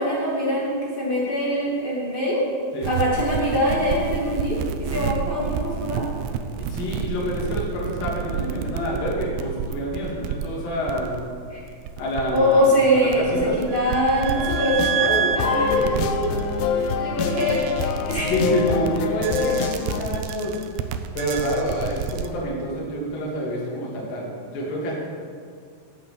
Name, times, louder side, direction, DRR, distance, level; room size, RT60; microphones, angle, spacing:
voice 1, 0.0-2.4 2.8-6.0 11.5-11.6 12.3-16.4 16.7-18.3, equal, 25° left, -6 dB, 1.2 m, -23 dB
sound 1, 2.8-22.3, right 8 dB, 80° right, 2.6 m, -29 dB
voice 2, 6.6-11.2 12.0-13.6 15.5-15.7 18.2-20.5 21.1-24.9, equal, 50° left, -4 dB, 3.8 m, -27 dB
sound 2, 14.3-20.0, left 6 dB, 85° left, 2.5 m, -26 dB
8.9 x 8.7 x 7.7 m, 2.2 s
omnidirectional pair, 5.5 m